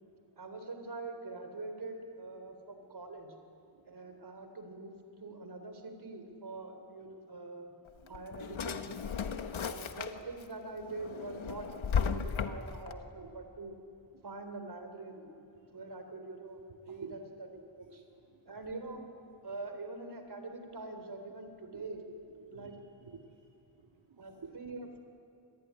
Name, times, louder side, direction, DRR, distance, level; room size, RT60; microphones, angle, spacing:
voice 1, 0.4-3.4 3.9-5.0 5.2-7.7 8.1-9.1 9.5-11.7 12.0-13.8 14.2-15.3 15.7-17.5 17.8-18.0 18.5-19.0 19.4-22.0 22.5-22.8 24.2-25.0, right 3 dB, 55° right, 6 dB, 3.9 m, -44 dB
voice 2, 3.7-4.2 8.0-8.3 13.2-13.4 14.1-14.2 15.5-15.8 16.9-17.2 18.1-18.4 21.7-21.8 22.4-25.0, right 5 dB, 75° right, 1 dB, 2.0 m, -54 dB
Drawer open or close, 7.9-10.4 10.9-12.9, left 6 dB, 90° left, 1.3 m, -35 dB
27.5 x 20.5 x 9.9 m, 2.6 s
wide cardioid pair, 150°, 46 cm